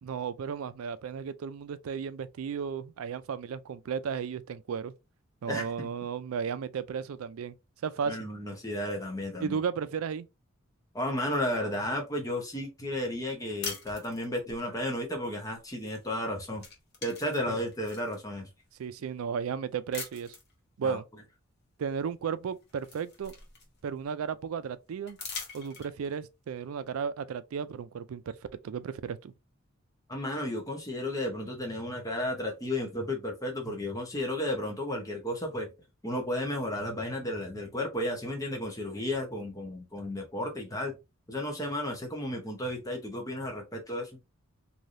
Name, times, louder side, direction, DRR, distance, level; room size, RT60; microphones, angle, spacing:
voice 1, 0.0-4.9 5.4-7.5 7.8-8.2 9.4-10.3 17.5-17.6 18.8-20.4 20.8-21.0 21.8-23.3 23.8-25.2 25.5-28.4 28.6-29.3, right 6 dB, 85° right, 0.4 m, -34 dB
voice 2, 5.5-5.9 8.1-9.6 10.9-16.6 17.0-18.5 20.8-21.0 30.1-35.7 36.0-41.0 41.3-44.1, left 1 dB, 15° left, 0.8 m, -33 dB
sound 1, 13.6-14.6 16.0-16.2 16.5-18.2 18.8-18.9 19.9-20.5 22.0-22.1 22.4-24.0 25.1-26.2, left 4 dB, 50° left, 0.9 m, -42 dB
3.3 x 2.7 x 2.5 m
head